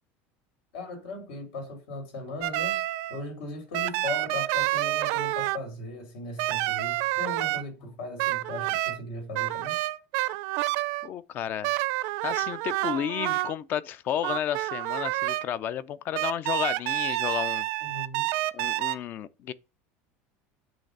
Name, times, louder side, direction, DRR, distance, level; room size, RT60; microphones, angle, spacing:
voice 1, 0.7-2.8 3.1-9.8 17.8-18.3, left 2 dB, 85° left, 3.5 m, -38 dB
sound 1, 2.4-3.2 3.7-5.6 6.4-7.6 8.2-9.0 9.3-11.1 11.6-13.5 14.2-15.4 16.1-18.9, right 18 dB, 55° right, 0.5 m, -28 dB
voice 2, 11.0-11.7 12.2-17.7 18.5-19.5, left 10 dB, 35° left, 0.4 m, -32 dB
8.9 x 3.2 x 6.5 m
cardioid pair, 170°, 6 cm